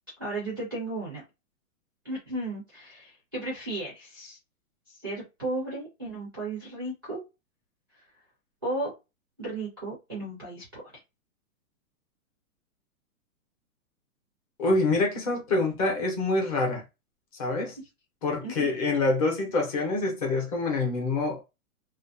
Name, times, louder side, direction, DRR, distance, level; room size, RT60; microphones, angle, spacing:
voice 1, 0.2-1.2 2.0-4.4 4.9-7.2 8.6-8.9 9.4-10.9 18.4-18.7, right 2 dB, 15° right, 0.3 m, -34 dB
voice 2, 14.6-16.8 17.3-17.8 18.2-21.4, left 3 dB, 25° left, 0.7 m, -26 dB
2.5 x 2.2 x 2.5 m
hypercardioid pair, 155°, 45 cm